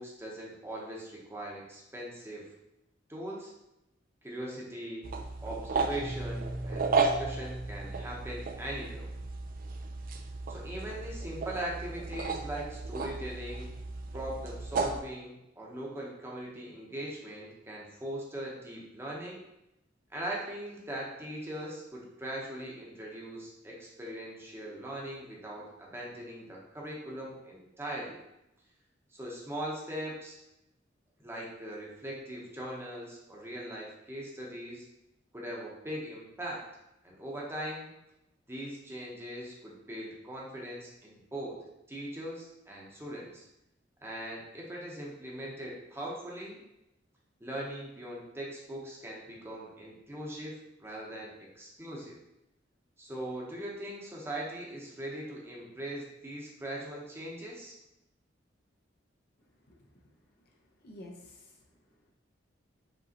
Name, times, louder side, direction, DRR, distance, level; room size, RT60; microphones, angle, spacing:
voice 1, 0.0-2.5 3.1-3.5 4.2-5.1 5.4-9.1 10.5-13.7 14.1-19.4 20.1-28.2 29.1-30.4 31.2-34.9 35.3-36.7 37.0-37.9 38.5-43.4 44.0-46.6 47.4-52.2 53.0-57.8, right 1 dB, 15° right, -3 dB, 0.8 m, -40 dB
sound 1, 5.0-15.0, right 4 dB, 50° right, 0.4 m, -34 dB
Guitar, 5.9-8.5, right 1 dB, 90° right, 1.4 m, -40 dB
voice 2, 59.7-60.1 60.5-61.7, left 1 dB, 55° left, 1 dB, 0.7 m, -52 dB
5.1 x 3.1 x 2.8 m, 0.87 s
head